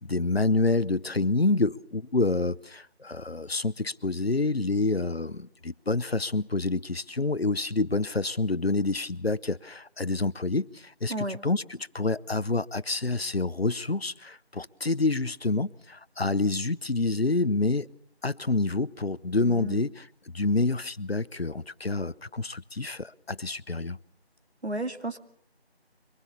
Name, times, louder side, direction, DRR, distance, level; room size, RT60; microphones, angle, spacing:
voice 1, 0.0-17.9 18.2-24.0, left 3 dB, 65° left, 0.9 m, -28 dB
voice 2, 19.4-19.8 24.6-25.2, right 1 dB, 80° right, 2.4 m, -32 dB
24.5 x 20.5 x 6.9 m
figure-of-eight pair, 175°, 32 cm